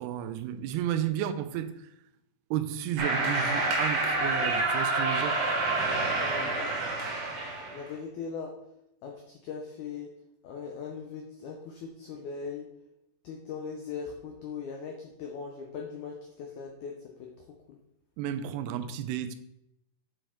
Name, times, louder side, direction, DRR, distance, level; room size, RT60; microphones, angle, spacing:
voice 1, 0.0-1.7 2.5-5.4 18.2-19.4, right 10 dB, 90° right, 2.6 m, -32 dB
sound 1, 3.0-7.8, right 2 dB, 60° right, 2.9 m, -28 dB
voice 2, 6.1-6.7 7.7-8.5 9.0-10.1 10.4-12.6 13.2-17.3 17.7-17.8, left 5 dB, 85° left, 1.7 m, -39 dB
7.7 x 4.7 x 4.4 m
omnidirectional pair, 4.5 m